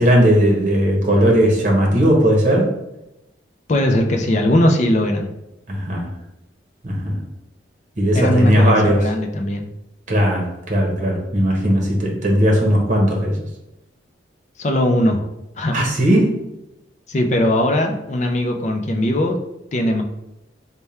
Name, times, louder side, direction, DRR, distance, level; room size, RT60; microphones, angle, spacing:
voice 1, 0.0-2.7 5.7-6.1 6.8-7.2 8.0-9.0 10.1-13.4 15.7-16.4, equal, 45° right, -1 dB, 0.9 m, -17 dB
voice 2, 3.7-5.3 8.1-9.7 14.6-15.2 15.6-15.8 17.1-19.4 19.7-20.0, left 1 dB, 40° left, 3 dB, 0.4 m, -19 dB
3.4 x 2.2 x 4.1 m, 0.90 s
head